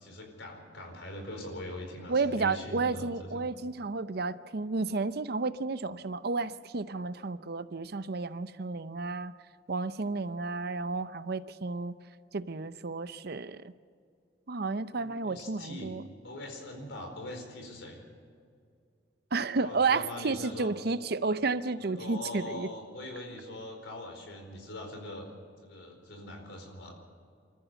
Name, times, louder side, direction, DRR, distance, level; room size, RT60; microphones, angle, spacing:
voice 1, 0.0-3.5 14.9-15.9 16.2-18.0 19.6-20.7 21.8-25.3 25.6-26.9, left 1 dB, 85° left, 3 dB, 4.5 m, -42 dB
voice 2, 2.1-9.3 9.7-11.9 12.3-13.6 14.5-16.0 19.3-22.7, right 4 dB, 55° right, 13 dB, 0.7 m, -32 dB
26.5 x 14.0 x 7.0 m, 2.3 s
head